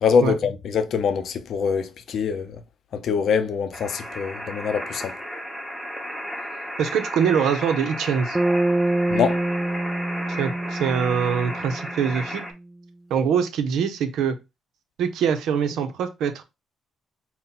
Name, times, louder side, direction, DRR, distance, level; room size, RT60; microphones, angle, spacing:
voice 1, 0.0-2.6 2.9-5.1 9.1-9.4, left 6 dB, 65° left, 0.5 m, -24 dB
sound 1, 3.7-12.5, equal, 5° left, 1.0 m, -34 dB
voice 2, 6.8-8.4 10.4-12.4 13.1-14.4 15.0-16.4, right 7 dB, 80° right, 0.7 m, -23 dB
Bass guitar, 8.3-12.4, right 2 dB, 20° right, 0.4 m, -26 dB
4.1 x 2.2 x 3.8 m
cardioid pair, 90°, 0 cm